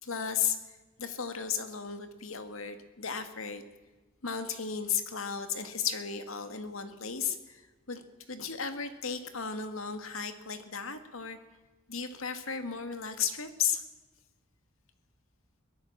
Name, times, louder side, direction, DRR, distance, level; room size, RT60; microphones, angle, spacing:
voice 1, 0.0-3.6 4.2-11.4 11.9-13.8, left 7 dB, 85° left, 8 dB, 2.0 m, -35 dB
23.0 x 17.0 x 7.4 m, 1.2 s
head